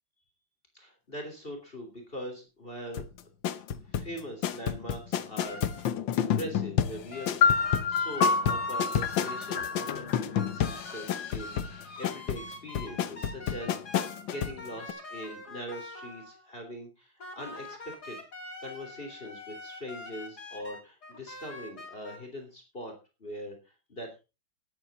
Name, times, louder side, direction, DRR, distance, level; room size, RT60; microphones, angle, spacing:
voice 1, 0.7-3.1 3.9-7.4 7.9-18.2 18.6-22.9 23.2-24.1, equal, 25° left, 3 dB, 3.4 m, -42 dB
sound 1, 2.9-14.6 14.9-15.0, left 9 dB, 75° left, 1.6 m, -31 dB
sound 2, 5.4-6.0 7.1-9.8 10.4-16.5 17.2-22.2, left 2 dB, 55° left, 3.8 m, -44 dB
sound 3, 7.4-11.3, left 5 dB, 90° left, 1.9 m, -28 dB
13.0 x 11.0 x 4.1 m, 0.29 s
omnidirectional pair, 2.1 m